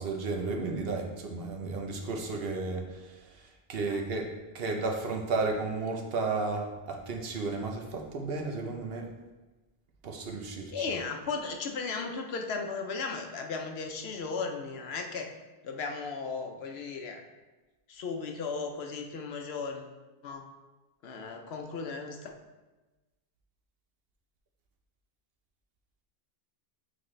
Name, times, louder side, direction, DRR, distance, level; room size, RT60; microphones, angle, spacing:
voice 1, 0.0-9.1 10.0-10.8, right 3 dB, 65° right, 2 dB, 0.9 m, -33 dB
voice 2, 10.7-15.3 15.6-17.2 17.9-19.9 20.2-20.4 21.0-22.3, left 4 dB, 70° left, 4 dB, 0.9 m, -36 dB
7.7 x 4.0 x 3.2 m, 1.2 s
omnidirectional pair, 1.1 m